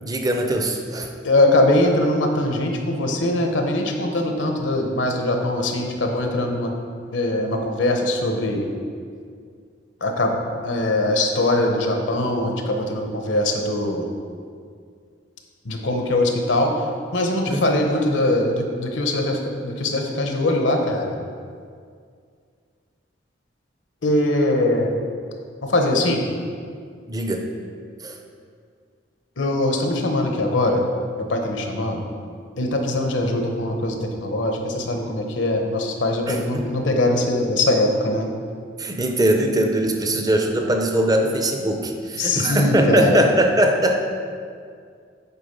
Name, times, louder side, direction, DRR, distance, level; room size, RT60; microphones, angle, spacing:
voice 1, 0.0-1.1 17.5-17.8 27.1-27.4 28.0-28.2 36.3-36.7 38.8-44.0, right 1 dB, 20° right, 4 dB, 0.6 m, -21 dB
voice 2, 1.2-6.7 7.1-8.7 10.0-10.3 10.6-14.1 15.6-16.7 17.1-21.2 24.0-24.9 25.6-26.3 29.4-30.8 31.3-32.1 32.6-38.3 42.2-43.2, left 1 dB, 75° left, 3 dB, 0.9 m, -22 dB
8.4 x 3.8 x 5.3 m, 2.2 s
head